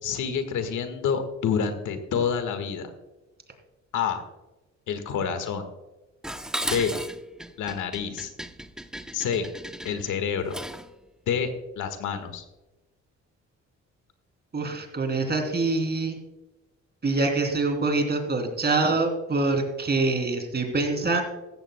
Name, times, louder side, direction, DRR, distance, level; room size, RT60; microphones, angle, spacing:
voice 1, 0.0-2.9 3.9-4.2 4.9-5.7 6.6-7.0 7.6-8.3 9.1-9.5 9.8-10.6 11.3-11.5 11.8-12.4, left 7 dB, 80° left, 8 dB, 1.6 m, -28 dB
Dishes pots and pans, 6.2-10.9, equal, ahead, 0.6 m, -36 dB
voice 2, 14.5-16.2 17.0-21.2, right 3 dB, 35° right, 4 dB, 3.1 m, -25 dB
15.0 x 14.0 x 2.2 m, 1.1 s
cardioid pair, 90°, 30 cm